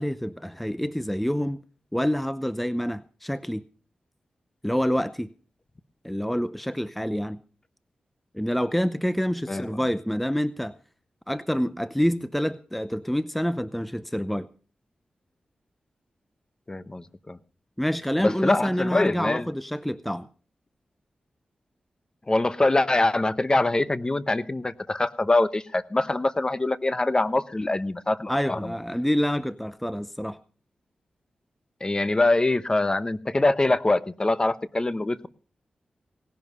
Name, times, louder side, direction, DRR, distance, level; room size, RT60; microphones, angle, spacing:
voice 1, 0.0-1.6 1.9-3.6 4.6-5.3 6.0-7.4 8.3-10.8 11.3-14.5 17.8-20.3 28.3-30.4, equal, 5° left, 0.6 m, -27 dB
voice 2, 16.7-17.4 18.2-19.4 22.3-28.6 31.8-35.3, left 2 dB, 30° left, 0.9 m, -24 dB
18.5 x 11.0 x 5.4 m
cardioid pair, 65°, 3 cm